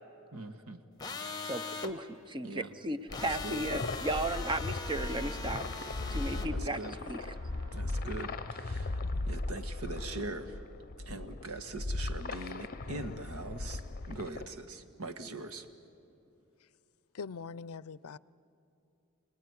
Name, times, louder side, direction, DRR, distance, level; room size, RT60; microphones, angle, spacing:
voice 1, 0.3-0.8 2.4-2.7 3.2-3.6 6.3-7.0 7.7-10.6 11.0-15.7, right 2 dB, 75° right, 1.5 m, -42 dB
sound 1, 1.0-1.9 3.1-6.5, left 4 dB, 20° left, 1.2 m, -41 dB
voice 2, 1.4-5.6 6.1-7.2, right 1 dB, 20° right, 0.7 m, -35 dB
sound 2, 3.1-14.5, left 2 dB, 40° left, 0.8 m, -38 dB
sound 3, 3.5-9.5, right 3 dB, 55° right, 1.7 m, -56 dB
voice 3, 17.1-18.2, left 5 dB, 75° left, 0.5 m, -42 dB
28.5 x 19.5 x 9.6 m
head